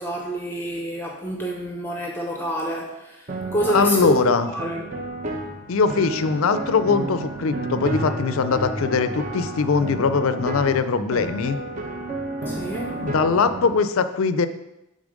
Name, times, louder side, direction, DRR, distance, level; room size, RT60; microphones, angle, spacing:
voice 1, 0.0-4.9 12.5-13.0, right 1 dB, 10° left, 1 dB, 0.6 m, -28 dB
sound 1, 3.3-13.7, right 1 dB, 35° right, 0.8 m, -31 dB
voice 2, 3.7-4.5 5.7-11.6 13.0-14.5, left 4 dB, 70° left, 12 dB, 0.5 m, -21 dB
7.1 x 3.8 x 5.2 m, 0.89 s
head